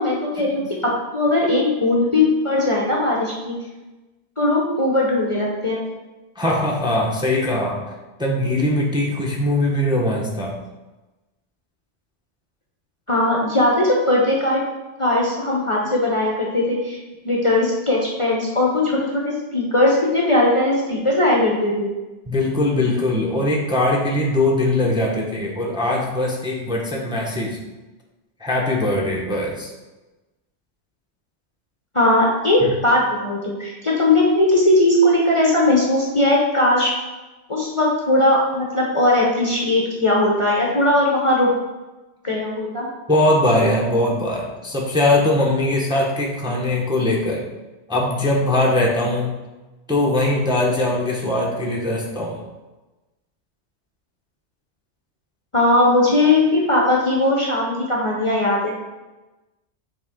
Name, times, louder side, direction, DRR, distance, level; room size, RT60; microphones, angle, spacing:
voice 1, 0.0-3.6 4.4-5.8 13.1-14.6 15.0-17.0 17.2-21.9 31.9-36.9 37.5-41.5 42.2-42.9 55.5-58.7, left 1 dB, 30° left, -3 dB, 0.8 m, -19 dB
voice 2, 6.4-7.8 8.2-10.6 22.3-27.6 28.4-29.7 32.6-32.7 43.1-47.4 47.9-49.3 49.9-52.4, left 1 dB, 5° right, -2 dB, 0.8 m, -21 dB
7.9 x 3.6 x 3.6 m, 1.1 s
omnidirectional pair, 1.2 m